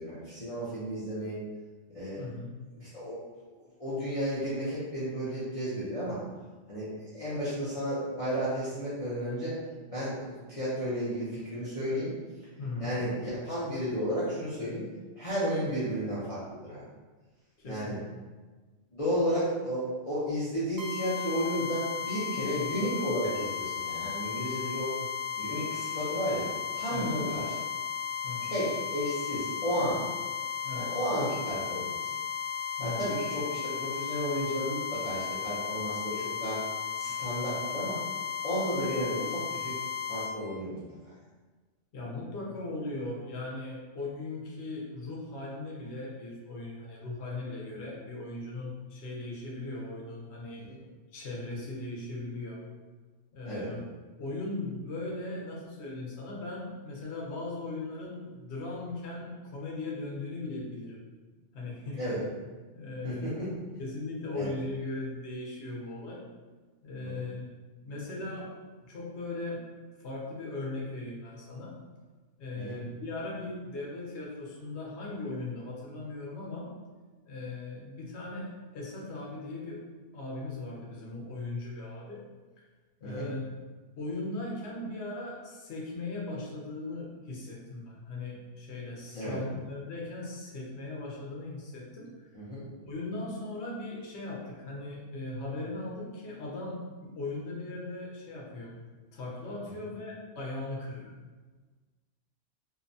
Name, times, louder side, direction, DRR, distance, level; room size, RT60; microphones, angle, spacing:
voice 1, 0.0-1.4 1.9-2.2 2.8-3.2 3.5-6.2 6.7-9.6 9.9-12.1 12.8-14.8 15.2-16.8 17.6-18.0 18.9-24.9 25.4-26.5 26.7-27.6 28.4-30.0 30.7-32.1 32.8-36.6 37.0-38.0 38.4-39.7 40.1-40.8 50.6-50.8 53.4-53.7 62.0-62.2 63.0-63.3 64.3-64.5 67.0-67.2 72.6-72.8 83.0-83.3 89.1-89.4 92.3-92.7, equal, 45° left, -11 dB, 0.5 m, -33 dB
voice 2, 2.2-2.5 12.6-13.0 17.6-18.2 25.0-25.1 26.9-27.1 28.2-28.6 30.6-30.9 32.8-33.1 41.9-50.7 51.1-52.6 53.3-53.9 54.2-61.0 61.5-62.0 62.7-63.4 63.8-66.2 66.8-67.5 67.8-68.5 68.8-69.6 70.0-71.7 72.4-76.7 77.2-79.8 80.1-82.2 83.0-83.6 84.0-92.2 92.8-98.8 99.1-101.1, left 2 dB, 65° left, -3 dB, 0.9 m, -38 dB
sound 1, 20.8-40.3, left 8 dB, 70° right, 0.4 m, -35 dB
2.7 x 2.1 x 2.5 m, 1.3 s
omnidirectional pair, 1.3 m